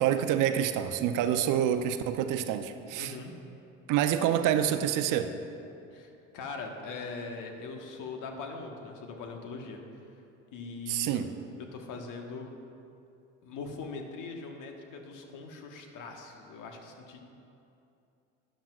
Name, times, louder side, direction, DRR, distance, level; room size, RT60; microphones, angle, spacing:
voice 1, 0.0-3.1 3.9-5.3 10.9-11.3, right 10 dB, 55° right, 9 dB, 0.6 m, -27 dB
voice 2, 3.0-3.3 5.9-9.8 10.5-11.2 11.7-12.5 13.4-17.2, left 4 dB, 55° left, 3 dB, 1.4 m, -41 dB
13.0 x 10.0 x 2.4 m, 2.7 s
hypercardioid pair, 70°, 38 cm